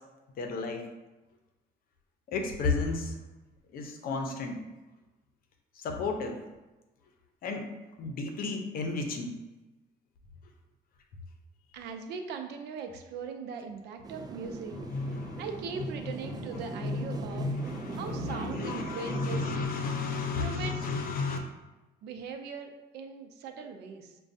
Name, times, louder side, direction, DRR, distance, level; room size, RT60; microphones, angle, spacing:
voice 1, 0.4-0.8 2.3-3.1 3.7-4.6 5.8-6.4 7.4-7.6 8.0-9.3 14.7-15.4 16.8-21.4, left 3 dB, 60° left, 4 dB, 0.7 m, -33 dB
voice 2, 11.7-14.8 15.4-17.5 17.9-19.5 20.4-20.9 22.0-24.2, right 5 dB, 80° right, 5 dB, 0.5 m, -40 dB
sound 1, 14.0-19.7, right 3 dB, 25° right, 0.3 m, -40 dB
6.1 x 2.3 x 2.6 m, 1.1 s
cardioid pair, 110°, 17 cm